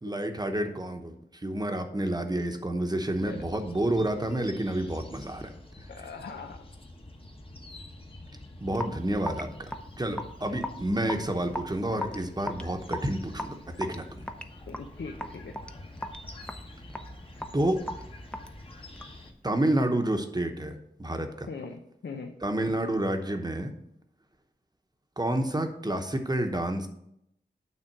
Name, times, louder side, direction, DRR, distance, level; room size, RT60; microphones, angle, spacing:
voice 1, 0.0-1.1 1.4-5.5 8.6-14.2 17.5-17.8 19.4-21.5 22.4-23.7 25.2-26.9, right 1 dB, 20° right, 5 dB, 0.9 m, -29 dB
sound 1, 3.1-19.3, left 1 dB, 30° left, 1.1 m, -47 dB
voice 2, 5.9-6.6 14.7-15.6 21.5-22.4, left 4 dB, 85° left, 4 dB, 0.6 m, -40 dB
Raindrop / Drip, 8.7-19.3, left 1 dB, 5° left, 0.6 m, -39 dB
9.1 x 3.6 x 5.9 m, 0.77 s
wide cardioid pair, 90°, 18 cm